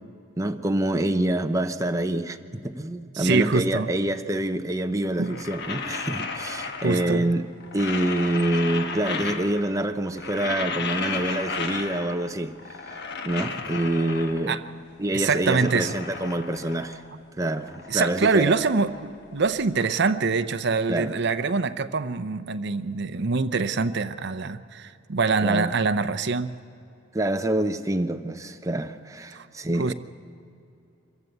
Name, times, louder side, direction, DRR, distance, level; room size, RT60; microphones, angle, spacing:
voice 1, 0.4-7.4 7.7-12.5 13.2-14.6 15.0-17.0 17.4-18.5 20.9-21.1 25.4-25.7 27.1-29.9, right 1 dB, 15° right, 0.8 m, -26 dB
voice 2, 3.2-3.9 5.2-5.4 6.8-7.2 14.5-14.6 15.1-16.0 17.9-26.5 29.3-29.5 29.8-29.9, right 4 dB, 60° right, 0.7 m, -24 dB
sound 1, 5.1-7.3 7.6-9.8 10.1-12.3 12.6-14.7 15.1-17.1 17.4-19.6, left 4 dB, 60° left, 1.3 m, -34 dB
25.0 x 15.0 x 8.1 m
head